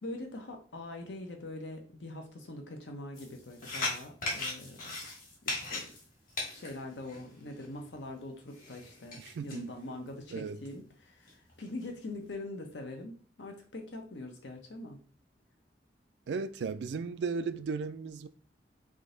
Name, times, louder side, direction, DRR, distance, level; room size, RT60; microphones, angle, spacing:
voice 1, 0.0-5.0 5.4-5.9 6.5-15.0, left 2 dB, 90° left, 0.9 m, -43 dB
sound 1, 3.2-7.7 8.5-9.6 10.1-10.2 10.7-10.8 11.3-11.8, left 2 dB, 50° left, 1.5 m, -38 dB
voice 2, 9.2-9.7 10.3-10.6 16.3-18.3, right 5 dB, 75° right, 0.3 m, -35 dB
3.7 x 2.7 x 3.8 m
head